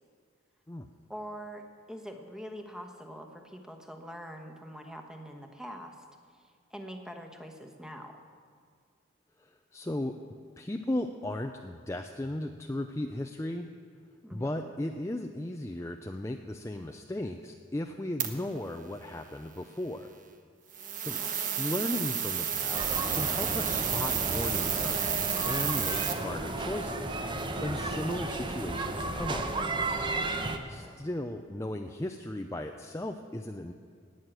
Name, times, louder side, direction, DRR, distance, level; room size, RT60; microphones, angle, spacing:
voice 1, 1.1-6.0 6.3-8.3 14.2-14.7 21.1-21.4 30.7-31.1, equal, 5° right, 4 dB, 1.2 m, -44 dB
voice 2, 9.4-10.1 10.6-13.7 14.3-20.1 21.0-21.2 21.6-29.8 30.7-33.7, left 1 dB, 15° left, 5 dB, 0.5 m, -36 dB
sound 1, 18.2-18.3 20.7-26.1, right 8 dB, 45° right, 1.1 m, -31 dB
sound 2, 22.7-30.6, right 2 dB, 25° right, 0.8 m, -33 dB
18.5 x 6.5 x 9.0 m, 2.1 s
head